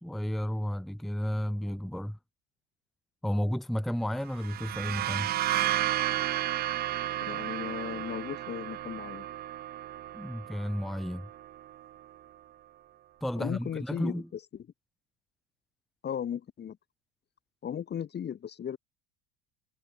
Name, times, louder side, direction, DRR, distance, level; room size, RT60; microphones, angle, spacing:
voice 1, 0.0-2.2 3.2-5.3 10.1-11.3 13.2-14.3, equal, ahead, 1.0 m, -32 dB
sound 1, 4.3-11.9, right 13 dB, 30° right, 0.4 m, -33 dB
voice 2, 7.3-9.3 13.4-14.4 16.0-16.8 17.6-18.8, left 9 dB, 30° left, 1.3 m, -36 dB
supercardioid pair, 125°, 36 cm